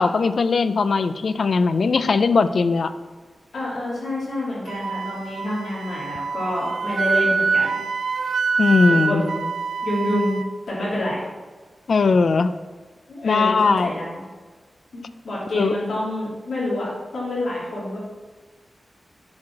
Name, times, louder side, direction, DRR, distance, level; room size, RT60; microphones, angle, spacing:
voice 1, 0.0-2.9 8.6-9.2 11.9-12.5 13.2-13.9 15.6-15.8, left 4 dB, 60° left, 12 dB, 0.4 m, -19 dB
voice 2, 3.5-7.8 9.0-9.4 9.8-10.4 10.7-11.2 13.1-14.2 14.9-18.0, left 1 dB, 85° left, -7 dB, 2.9 m, -27 dB
Wind instrument woodwind instrument, 4.7-10.5, right 4 dB, 80° right, 0.4 m, -25 dB
9.6 x 4.8 x 6.0 m, 1.4 s
wide cardioid pair, 145°, 0 cm